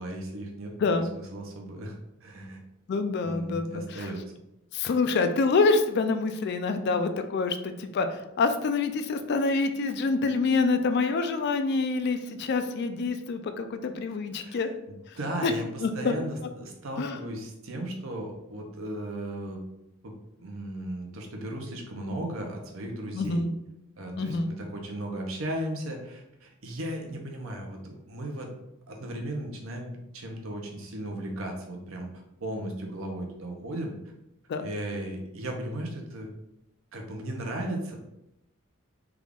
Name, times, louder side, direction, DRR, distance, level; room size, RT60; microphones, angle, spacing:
voice 1, 0.0-2.0 2.2-2.6 3.2-4.2 14.4-19.6 20.0-20.1 20.4-23.5 24.0-28.5 28.9-33.9 34.6-36.3 36.9-38.0, right 1 dB, 70° right, 1 dB, 0.7 m, -36 dB
voice 2, 2.9-4.1 4.7-14.7 15.4-15.5 15.8-16.1 17.0-17.2 23.1-23.5 24.2-24.5 34.5-34.7, left 4 dB, 50° left, 8 dB, 0.3 m, -26 dB
3.5 x 2.4 x 3.5 m, 0.85 s
head